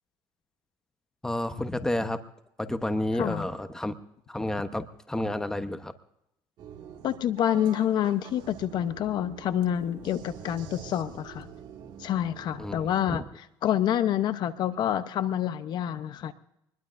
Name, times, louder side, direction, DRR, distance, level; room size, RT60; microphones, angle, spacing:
voice 1, 1.2-2.2 2.6-3.9 4.3-5.9 12.6-12.8 13.1-13.2, left 1 dB, 5° left, 9 dB, 1.0 m, -30 dB
sound 1, 6.6-13.1, right 7 dB, 60° right, 2.1 m, -46 dB
voice 2, 7.0-11.5 12.0-13.2 13.6-16.3, left 10 dB, 60° left, 12 dB, 0.8 m, -27 dB
24.0 x 20.5 x 2.6 m, 0.80 s
cardioid pair, 110°, 8 cm